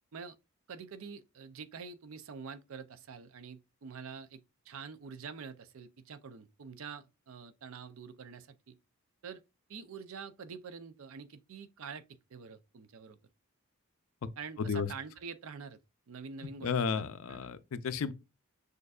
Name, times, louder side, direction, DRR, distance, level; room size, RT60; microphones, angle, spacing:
voice 1, 0.7-8.7 9.2-9.4 9.7-13.2 14.4-15.8 16.1-17.5, right 5 dB, 70° right, 0.5 m, -46 dB
voice 2, 14.6-14.9 16.6-18.1, left 6 dB, 75° left, 0.4 m, -33 dB
6.4 x 2.5 x 2.4 m
head